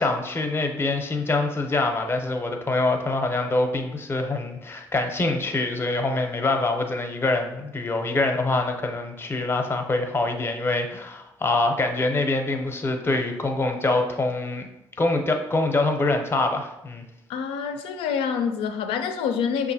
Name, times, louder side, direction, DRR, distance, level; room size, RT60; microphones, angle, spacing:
voice 1, 0.0-14.7 15.0-17.0, left 2 dB, 25° left, 5 dB, 0.6 m, -25 dB
voice 2, 17.3-19.7, left 7 dB, 85° left, 7 dB, 0.4 m, -26 dB
5.3 x 2.5 x 2.7 m, 0.88 s
supercardioid pair, 75°, 9 cm